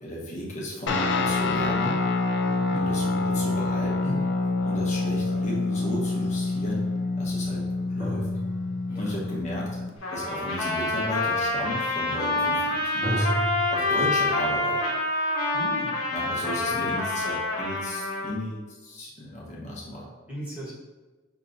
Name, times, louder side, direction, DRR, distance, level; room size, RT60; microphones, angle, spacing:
voice 1, 0.0-2.0 2.7-4.2 4.6-6.8 7.2-7.6 7.9-8.2 8.9-9.7 10.1-13.3 13.7-14.8 16.1-20.1, equal, 35° left, -4 dB, 1.0 m, -34 dB
Guitar, 0.9-10.0, left 3 dB, 55° left, 0.4 m, -27 dB
voice 2, 2.4-2.9 8.9-9.1 15.5-16.0 16.4-16.9 20.3-20.7, equal, 5° right, -8 dB, 1.3 m, -38 dB
sound 1, 2.6-6.3 8.0-9.1 13.0-13.7, right 1 dB, 30° right, 1.3 m, -34 dB
Trumpet, 10.0-18.3, left 2 dB, 80° left, 1.0 m, -27 dB
5.8 x 3.0 x 2.6 m, 1.2 s
head